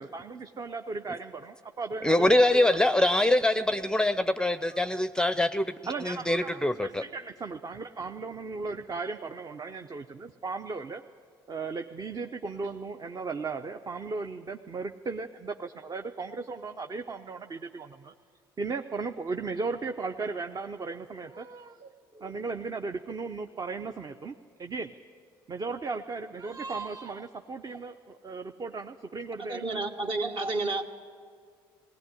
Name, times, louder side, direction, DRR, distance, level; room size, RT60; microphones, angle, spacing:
voice 1, 0.0-2.7 4.7-5.0 5.9-11.0 11.5-18.1 18.6-24.9 25.5-29.8, right 4 dB, 35° right, 6 dB, 0.8 m, -36 dB
voice 2, 2.0-5.7 6.0-7.0, left 1 dB, 5° left, 13 dB, 0.6 m, -24 dB
voice 3, 29.4-30.8, right 2 dB, 50° right, 4 dB, 1.9 m, -30 dB
19.0 x 17.0 x 9.9 m, 2.1 s
hypercardioid pair, 60°, 11 cm